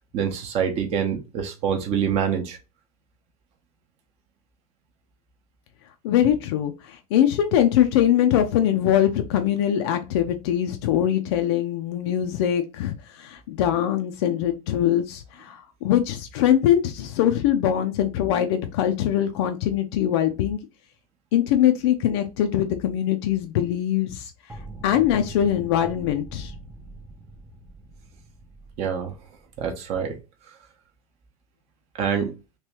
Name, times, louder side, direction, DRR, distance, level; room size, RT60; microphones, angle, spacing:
voice 1, 0.1-2.6 28.8-29.1 29.6-30.2 31.9-32.3, right 7 dB, 35° right, 0.8 m, -25 dB
voice 2, 6.0-20.6 21.3-24.3 24.8-26.5, left 10 dB, 45° left, 0.4 m, -22 dB
sound 1, 24.5-30.2, right 2 dB, 10° right, 0.5 m, -42 dB
3.0 x 2.9 x 3.0 m
figure-of-eight pair, 90°, 20 cm